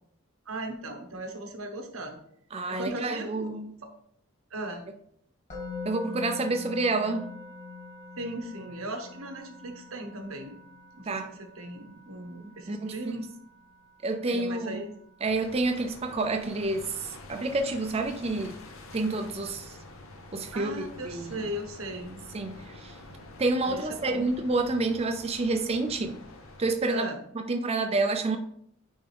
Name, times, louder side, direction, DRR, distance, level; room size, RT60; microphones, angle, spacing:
voice 1, 0.5-2.2 2.7-3.5 4.5-4.8 8.2-10.5 10.9-13.3 14.3-14.9 20.5-22.2 23.6-24.3 26.9-27.2, right 1 dB, 85° right, 4 dB, 1.2 m, -37 dB
voice 2, 2.5-3.7 5.8-7.3 11.1-11.3 12.7-13.0 14.0-14.8 15.2-18.6 18.9-19.8 20.3-21.5 22.3-23.0 23.4-26.2 26.6-27.1 27.3-28.4, right 2 dB, 30° right, 5 dB, 0.4 m, -29 dB
Musical instrument, 5.5-16.6, left 4 dB, 35° left, 2.4 m, -45 dB
sound 1, 15.2-26.7, left 2 dB, 75° left, 1.0 m, -47 dB
9.4 x 3.6 x 3.4 m, 0.68 s
head